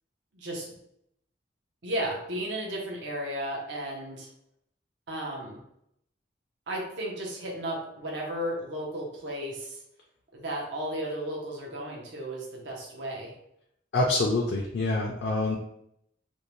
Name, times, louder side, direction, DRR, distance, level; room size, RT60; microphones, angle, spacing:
voice 1, 0.3-0.7 1.8-4.3 5.1-5.6 6.7-9.8 10.3-13.3, right 1 dB, 80° right, -1 dB, 0.7 m, -34 dB
voice 2, 13.9-15.6, left 2 dB, 70° left, -1 dB, 0.4 m, -26 dB
2.6 x 2.1 x 3.0 m, 0.75 s
head